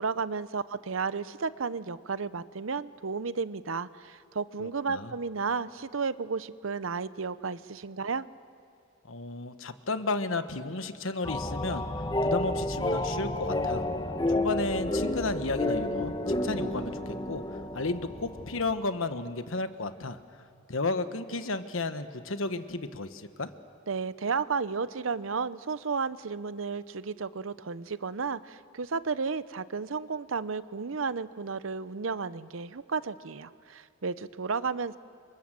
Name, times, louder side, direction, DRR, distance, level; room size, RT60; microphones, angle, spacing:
voice 1, 0.0-8.3 23.9-35.0, right 5 dB, 75° right, 15 dB, 0.7 m, -33 dB
voice 2, 4.6-5.1 9.0-11.9 12.2-13.8 14.3-17.4 17.7-20.2 20.7-23.5, left 3 dB, 75° left, 10 dB, 1.3 m, -33 dB
sound 1, 11.2-18.7, left 1 dB, 20° left, 1.2 m, -30 dB
29.0 x 25.5 x 7.6 m, 2.3 s
head